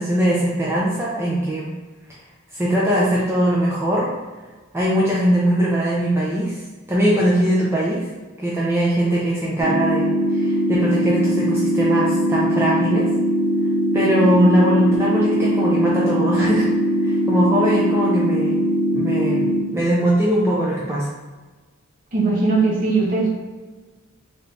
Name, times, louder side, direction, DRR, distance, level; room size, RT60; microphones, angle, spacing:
voice 1, 0.0-1.7 2.5-4.1 4.7-6.6 6.9-8.0 8.4-10.1 10.3-13.1 13.9-16.7 17.0-18.6 18.9-21.1, right 1 dB, 10° right, -6 dB, 0.4 m, -20 dB
sound 1, 9.6-19.6, equal, 80° right, 1.5 m, -21 dB
voice 2, 22.1-23.3, right 3 dB, 40° right, -4 dB, 0.7 m, -19 dB
3.3 x 3.2 x 2.5 m, 1.3 s
head